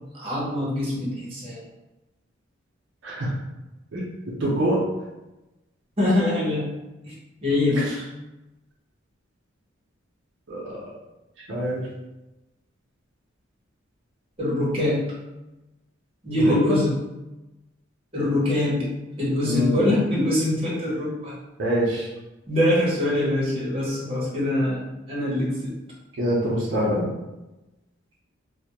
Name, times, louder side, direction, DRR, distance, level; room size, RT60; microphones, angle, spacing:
voice 1, 0.1-1.6 6.0-6.7 7.0-7.1 7.4-7.9 14.4-15.1 16.2-17.0 18.1-18.8 19.2-21.3 22.5-24.8 25.1-25.7, left 1 dB, 30° right, -7 dB, 0.7 m, -23 dB
voice 2, 4.4-4.8 10.5-10.8 11.5-11.9 16.4-16.8 19.4-19.8 21.6-22.1 26.1-27.1, equal, 65° right, -5 dB, 0.5 m, -24 dB
2.2 x 2.0 x 2.8 m, 1.0 s
head